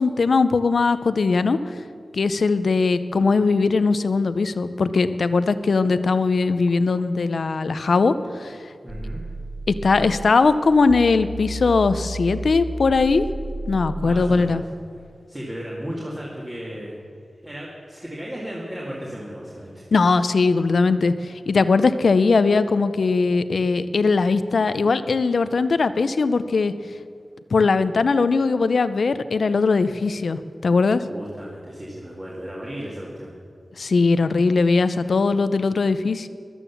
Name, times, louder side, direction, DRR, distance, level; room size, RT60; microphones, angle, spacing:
voice 1, 0.0-1.6 2.1-8.6 9.7-13.3 13.7-14.6 19.9-26.7 27.5-31.0 33.8-36.3, left 4 dB, 65° left, 13 dB, 0.6 m, -20 dB
voice 2, 8.8-9.2 14.0-14.6 15.3-17.0 17.4-19.9 31.1-33.3, equal, 15° right, -5 dB, 2.1 m, -35 dB
sound 1, 8.9-10.3 10.9-14.3, right 1 dB, 35° right, 4.1 m, -32 dB
14.0 x 12.0 x 7.1 m, 2.2 s
wide cardioid pair, 120°, 0 cm